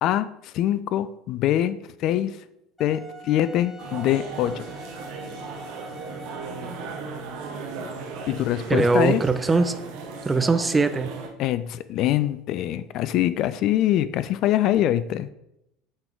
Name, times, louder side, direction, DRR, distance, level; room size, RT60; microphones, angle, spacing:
voice 1, 0.0-2.4 2.8-4.6 8.3-9.2 11.4-15.3, left 12 dB, 55° left, 14 dB, 0.3 m, -24 dB
Wind instrument woodwind instrument, 2.8-7.3, left 1 dB, 5° left, 1.3 m, -44 dB
sound 1, 3.8-11.3, right 4 dB, 65° right, 1.1 m, -36 dB
voice 2, 8.7-9.7 10.3-11.1, right 3 dB, 20° right, 11 dB, 0.5 m, -21 dB
7.9 x 3.8 x 3.8 m, 0.84 s
hypercardioid pair, 75°, 0 cm